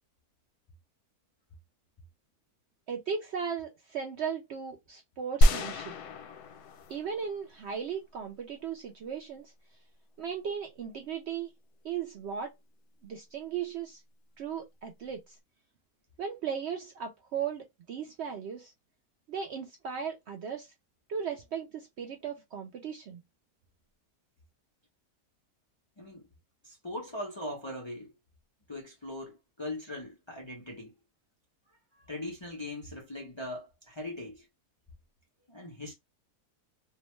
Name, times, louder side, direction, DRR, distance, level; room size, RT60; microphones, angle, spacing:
voice 1, 2.9-5.9 6.9-9.5 10.2-11.5 11.8-12.5 13.0-14.0 14.4-15.4 16.2-18.7 19.3-20.7 21.1-23.2, right 7 dB, 75° right, 0.6 m, -37 dB
sound 1, 5.4-7.7, equal, 80° left, 1.1 m, -27 dB
voice 2, 26.0-26.3 26.6-28.1 28.7-30.9 32.1-34.4 35.5-35.9, left 1 dB, 45° left, 0.3 m, -40 dB
2.7 x 2.1 x 3.0 m
omnidirectional pair, 1.6 m